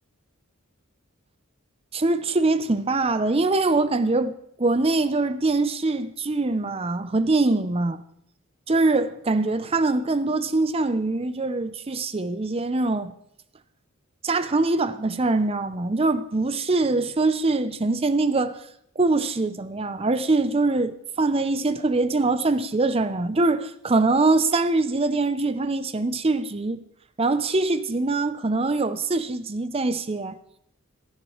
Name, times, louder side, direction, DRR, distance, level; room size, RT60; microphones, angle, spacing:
voice 1, 1.9-8.0 8.7-13.1 14.2-18.6 19.0-26.8 27.2-30.4, right 3 dB, 30° right, 0.6 m, -23 dB
17.5 x 12.0 x 3.2 m
head